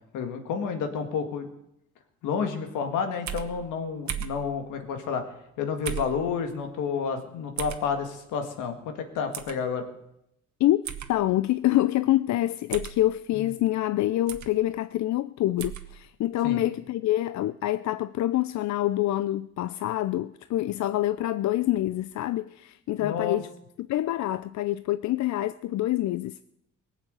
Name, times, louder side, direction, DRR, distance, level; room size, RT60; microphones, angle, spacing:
voice 1, 0.1-1.5 2.2-5.2 5.6-9.8 13.4-13.5 16.4-16.6 23.0-23.4, left 6 dB, 90° left, 2.0 m, -30 dB
sound 1, 3.3-3.5 4.1-4.4 5.8-6.2 7.6-7.8 9.3-9.5 10.8-11.1 12.7-13.0 14.3-14.5 15.6-15.8, right 10 dB, 70° right, 1.3 m, -34 dB
voice 2, 10.6-23.5 23.8-26.4, left 14 dB, 70° left, 0.5 m, -26 dB
18.5 x 7.4 x 8.1 m
cardioid pair, 90°, 30 cm